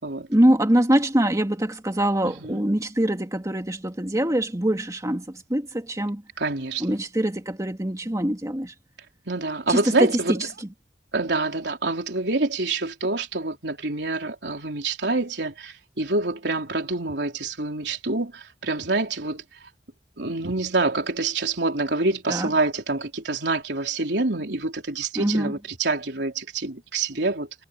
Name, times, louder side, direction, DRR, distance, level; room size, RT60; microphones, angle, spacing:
voice 1, 0.3-6.2 6.8-8.7 9.7-10.7 22.3-22.5 25.2-25.5, right 1 dB, 20° right, 2.0 m, -23 dB
voice 2, 2.2-2.6 6.4-7.0 9.3-10.3 11.1-19.4 20.2-27.6, right 3 dB, 75° right, 3.7 m, -26 dB
head